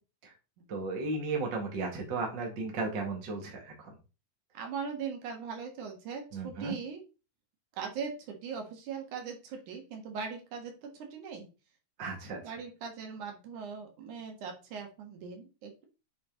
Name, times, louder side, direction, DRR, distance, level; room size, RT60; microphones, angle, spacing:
voice 1, 0.7-3.9 6.3-6.7 12.0-12.4, right 3 dB, 40° right, 1 dB, 2.4 m, -35 dB
voice 2, 4.5-7.0 7.7-11.5 12.3-15.8, right 6 dB, 90° right, 2 dB, 3.1 m, -40 dB
8.8 x 4.3 x 3.9 m, 0.31 s
omnidirectional pair, 3.4 m